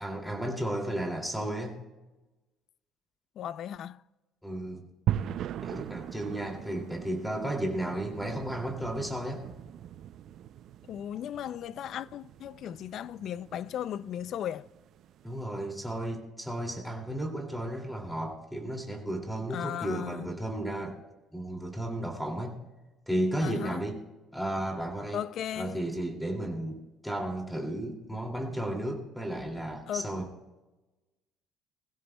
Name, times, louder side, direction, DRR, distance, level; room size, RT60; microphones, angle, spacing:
voice 1, 0.0-1.8 4.4-4.9 5.6-9.4 15.2-21.0 21.3-22.6 23.1-24.0 24.3-25.2 25.5-30.3, right 1 dB, ahead, 2.5 m, -33 dB
voice 2, 3.4-4.0 10.9-14.7 19.5-20.3 23.4-23.8 25.1-25.8 29.9-30.1, left 10 dB, 55° left, 0.4 m, -36 dB
sound 1, 5.1-15.3, right 11 dB, 55° right, 0.4 m, -39 dB
21.5 x 16.0 x 2.2 m
cardioid pair, 145°, 0 cm